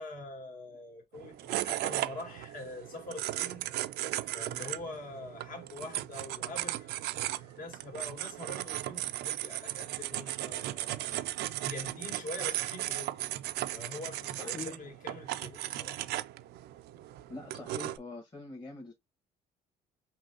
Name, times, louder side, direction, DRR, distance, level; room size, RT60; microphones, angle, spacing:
voice 1, 0.0-3.7 4.0-11.1 11.6-13.2 13.7-16.0, left 2 dB, 50° left, 1.9 m, -44 dB
sound 1, 1.1-18.0, right 15 dB, 75° right, 0.4 m, -36 dB
voice 2, 14.3-14.7 17.3-18.9, left 3 dB, 25° left, 1.5 m, -44 dB
5.3 x 2.8 x 2.7 m
cardioid pair, 110°, 17 cm